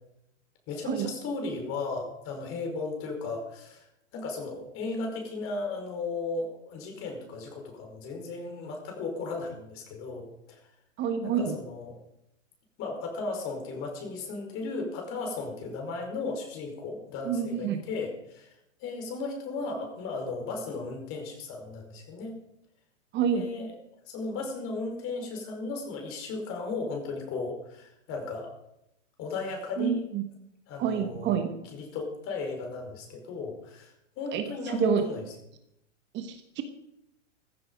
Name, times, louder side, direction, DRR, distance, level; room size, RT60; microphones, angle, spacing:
voice 1, 0.7-3.9 4.1-10.6 11.2-12.0 12.8-18.5 18.8-22.4 23.3-23.7 24.1-28.5 29.2-30.0 30.7-31.4 31.7-35.2, left 3 dB, 35° left, 3 dB, 4.9 m, -35 dB
voice 2, 11.0-11.5 17.2-17.8 23.1-23.5 29.8-30.2 30.8-31.5 34.3-35.0 36.1-36.6, right 8 dB, 30° right, 7 dB, 1.3 m, -28 dB
15.0 x 13.5 x 5.2 m, 0.81 s
hypercardioid pair, 125°, 38 cm